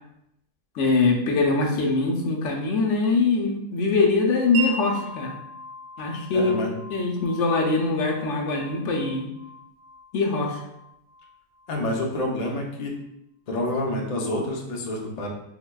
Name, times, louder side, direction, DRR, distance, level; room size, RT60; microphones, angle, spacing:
voice 1, 0.7-5.3 6.0-6.7 6.9-9.3 10.1-10.6, left 3 dB, 70° left, 1 dB, 0.9 m, -23 dB
Wind chime, 4.5-12.2, right 2 dB, 65° right, 1.0 m, -38 dB
voice 2, 6.3-6.7 11.7-13.0 13.5-15.3, left 1 dB, 50° left, 0 dB, 0.4 m, -28 dB
4.6 x 2.1 x 2.2 m, 0.81 s
omnidirectional pair, 1.3 m